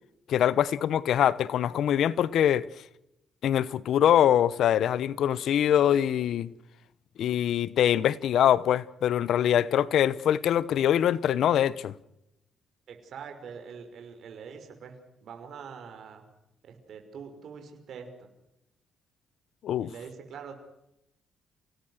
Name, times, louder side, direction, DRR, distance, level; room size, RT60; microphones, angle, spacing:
voice 1, 0.3-2.7 3.4-6.5 7.2-11.9 19.6-19.9, left 10 dB, 70° left, 0.9 m, -24 dB
voice 2, 12.9-16.2 16.6-18.1 19.8-20.5, right 6 dB, 65° right, 5.6 m, -44 dB
29.0 x 18.5 x 6.5 m
cardioid pair, 90°, 0 cm